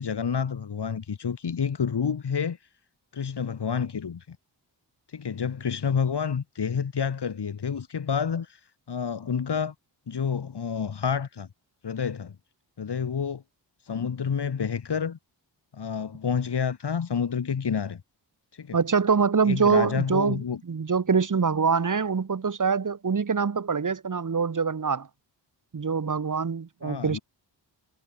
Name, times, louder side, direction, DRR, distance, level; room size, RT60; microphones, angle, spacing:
voice 1, 0.0-2.6 3.1-4.4 5.1-8.6 8.9-9.7 10.1-11.5 11.8-12.3 12.8-13.4 13.9-15.2 15.7-18.0 18.6-18.8 19.5-20.6 26.8-27.2, left 6 dB, 65° left, 7.9 m, -29 dB
voice 2, 18.7-25.1 25.7-27.2, right 5 dB, 45° right, 3.0 m, -24 dB
wide cardioid pair, 95°, 44 cm